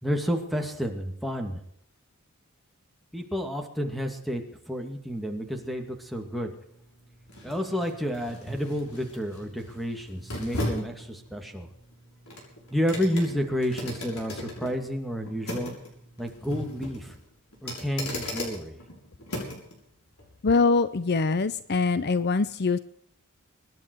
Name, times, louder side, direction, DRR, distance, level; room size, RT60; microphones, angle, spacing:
voice 1, 0.0-1.6 3.1-6.5 7.4-11.7 12.7-15.7 16.2-17.2 17.6-18.8, equal, ahead, 4 dB, 2.3 m, -30 dB
sound 1, 5.1-19.7 20.2-20.3, left 1 dB, 70° left, 7.0 m, -38 dB
voice 2, 20.4-22.8, left 4 dB, 50° left, 14 dB, 0.7 m, -23 dB
25.0 x 11.0 x 4.7 m, 0.70 s
head